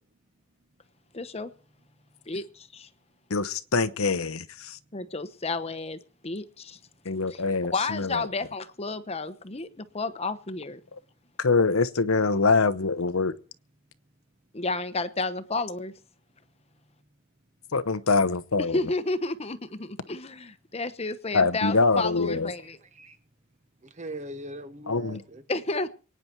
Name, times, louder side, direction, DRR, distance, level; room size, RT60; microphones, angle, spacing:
voice 1, 1.1-1.5 2.3-2.9 4.9-6.8 7.3-7.4 7.7-10.8 14.5-15.9 18.7-22.8 25.1-25.2 25.5-25.9, left 3 dB, 30° left, 0.9 m, -31 dB
voice 2, 3.3-4.8 7.0-8.3 11.4-13.3 17.7-18.8 21.3-22.5 24.9-25.2, left 4 dB, 80° left, 0.9 m, -24 dB
voice 3, 22.6-23.2 24.0-25.4, right 1 dB, 35° right, 1.1 m, -40 dB
24.0 x 9.7 x 4.6 m
head